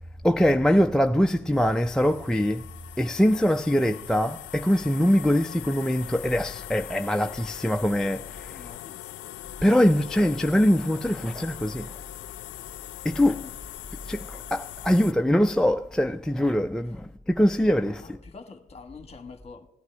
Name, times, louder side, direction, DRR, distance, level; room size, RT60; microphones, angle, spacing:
voice 1, 0.2-2.6 3.0-8.7 9.6-11.9 13.0-13.4 14.1-18.0, equal, 5° left, 0.4 m, -23 dB
sound 1, 1.5-15.1, left 15 dB, 75° left, 0.4 m, -41 dB
voice 2, 8.5-9.1 13.2-13.5 18.0-19.7, left 4 dB, 30° left, 1.4 m, -45 dB
17.5 x 11.5 x 3.3 m
cardioid pair, 90°, 20 cm